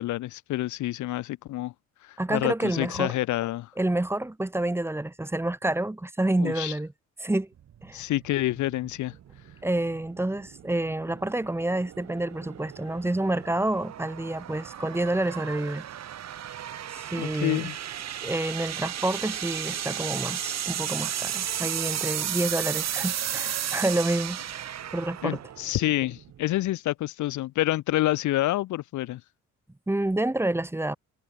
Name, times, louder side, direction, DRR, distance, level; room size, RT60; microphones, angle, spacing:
voice 1, 0.0-1.7 2.0-3.7 6.4-6.7 7.9-9.1 17.2-17.8 25.2-29.2, left 16 dB, 75° left, 0.7 m, -28 dB
voice 2, 2.2-3.1 3.8-6.9 7.2-7.5 7.8-8.0 9.6-15.9 16.9-17.7 18.2-24.4 24.9-25.4 29.9-31.0, right 1 dB, 10° right, 1.0 m, -28 dB
sound 1, 7.6-26.7, right 10 dB, 60° right, 1.9 m, -34 dB
cardioid pair, 90°, 30 cm